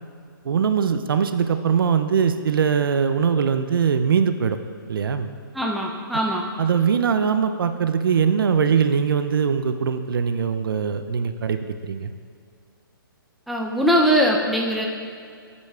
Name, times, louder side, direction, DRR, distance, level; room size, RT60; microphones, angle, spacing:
voice 1, 0.4-4.6 4.9-5.3 6.6-12.1, right 7 dB, 70° right, 9 dB, 0.5 m, -21 dB
voice 2, 5.5-6.5 13.5-14.9, equal, ahead, -2 dB, 0.5 m, -21 dB
9.3 x 8.2 x 2.4 m, 2.2 s
hypercardioid pair, 140°, 12 cm